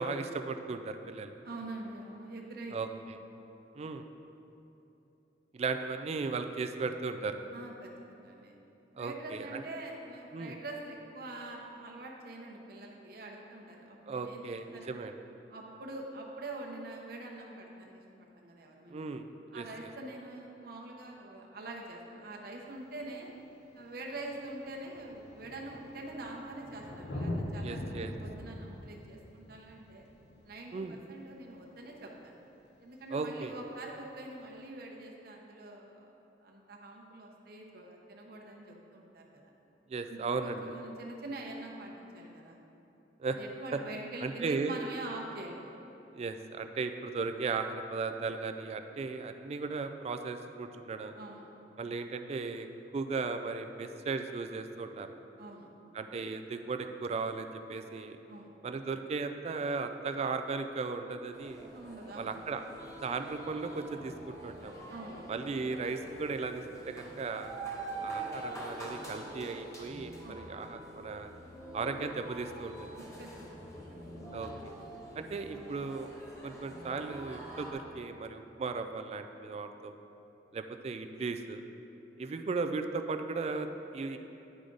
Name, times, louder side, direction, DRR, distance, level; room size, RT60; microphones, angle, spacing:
voice 1, 0.0-1.3 2.7-2.9 3.7-4.1 5.5-7.4 9.0-9.6 10.3-10.6 14.1-15.1 18.9-19.9 27.6-28.1 30.7-31.0 33.1-33.5 39.9-40.6 43.2-43.4 43.7-43.8 44.2-44.7 46.1-51.1 51.8-52.7 52.9-55.1 55.9-58.2 58.6-61.7 62.2-62.6 63.0-64.7 65.3-67.5 68.0-71.3 71.7-72.9 74.3-74.5 75.2-76.1 76.4-80.0 80.5-81.6 82.2-83.7 83.9-84.2, right 4 dB, 35° right, 7 dB, 0.3 m, -36 dB
voice 2, 1.4-3.0 7.5-8.5 9.0-15.1 15.5-19.1 19.5-23.3 23.7-30.1 30.4-32.3 32.8-36.1 36.4-39.5 40.0-42.6 43.3-45.6 51.1-51.5 55.4-55.7 58.3-58.5 61.7-62.4 64.9-65.4 70.2-70.5 72.9-73.7, right 2 dB, 60° right, 0 dB, 0.9 m, -45 dB
Thunder, 22.8-22.9 23.8-23.9 24.1-31.5 33.1-33.2, left 1 dB, 70° left, 0.8 m, -42 dB
sound 1, 61.3-77.7, right 2 dB, 15° left, 1.1 m, -45 dB
9.5 x 4.9 x 3.9 m, 2.9 s
head